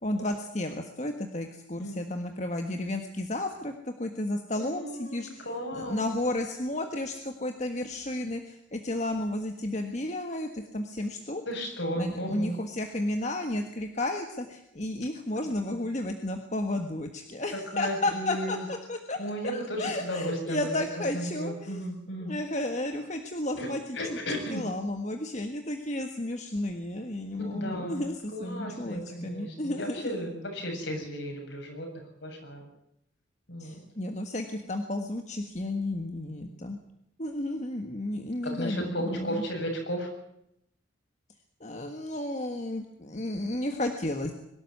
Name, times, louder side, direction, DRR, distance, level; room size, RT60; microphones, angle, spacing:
voice 1, 0.0-5.4 5.7-11.4 12.0-19.2 19.5-21.8 22.2-24.2 24.5-30.2 33.6-36.8 37.2-39.4 41.6-44.3, left 1 dB, 35° left, 5 dB, 1.6 m, -32 dB
voice 2, 4.6-6.0 11.5-12.6 15.4-15.8 17.5-18.6 19.2-20.7 21.1-22.3 23.6-23.7 23.9-24.6 27.5-28.1 28.3-31.9 32.2-32.6 33.5-33.8 38.4-40.1, equal, 65° left, 2 dB, 7.7 m, -34 dB
23.0 x 13.0 x 9.6 m, 0.77 s
head